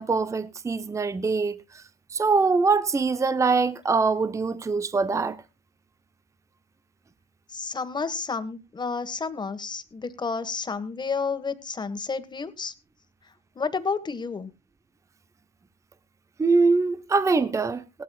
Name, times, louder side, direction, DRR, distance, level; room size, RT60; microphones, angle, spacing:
voice 1, 0.0-1.8 2.1-5.4 16.4-18.0, right 4 dB, 20° right, 0.7 m, -23 dB
voice 2, 7.5-12.7 13.5-14.5, left 4 dB, 25° left, 1.5 m, -30 dB
18.5 x 12.5 x 2.4 m
cardioid pair, 110°, 17 cm